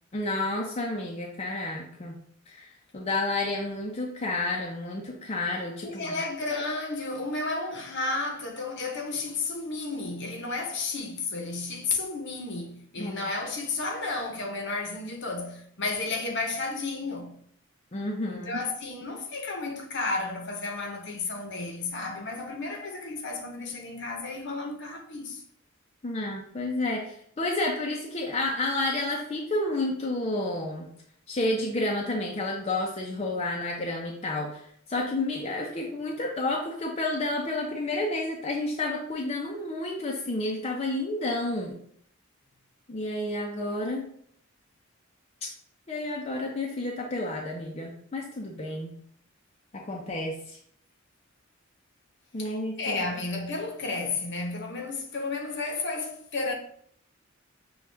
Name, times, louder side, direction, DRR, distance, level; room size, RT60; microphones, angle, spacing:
voice 1, 0.1-2.1 2.5-2.7 2.9-6.2 13.0-13.1 17.9-18.6 26.0-30.9 31.3-34.6 34.9-41.8 42.9-44.1 45.9-48.9 49.7-50.6 52.3-53.0, left 2 dB, 30° left, 0.5 m, -30 dB
voice 2, 5.8-17.3 18.3-25.4 52.4-52.5 52.8-56.5, left 3 dB, 60° left, 0.8 m, -32 dB
6.2 x 2.3 x 3.3 m
head